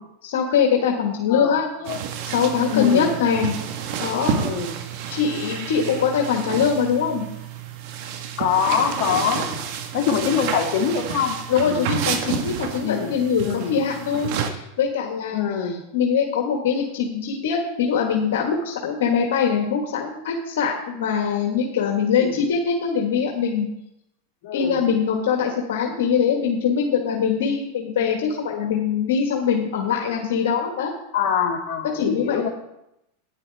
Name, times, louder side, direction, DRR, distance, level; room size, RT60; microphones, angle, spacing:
voice 1, 0.2-1.7 2.3-3.5 4.0-4.4 5.1-7.3 11.5-15.4 15.9-23.7 24.5-30.9 31.9-32.5, left 6 dB, 75° left, 1 dB, 1.5 m, -22 dB
voice 2, 1.3-2.0 2.7-3.2 4.3-4.8 8.4-9.6 9.9-11.4 11.6-11.9 12.8-13.1 13.4-13.8 15.3-15.8 22.1-22.4 24.4-24.8 31.1-32.5, left 7 dB, 55° left, 0 dB, 2.2 m, -24 dB
sound 1, 1.8-14.5, right 7 dB, 60° right, 1.3 m, -30 dB
11.0 x 9.8 x 3.5 m, 0.84 s
supercardioid pair, 130°, 0 cm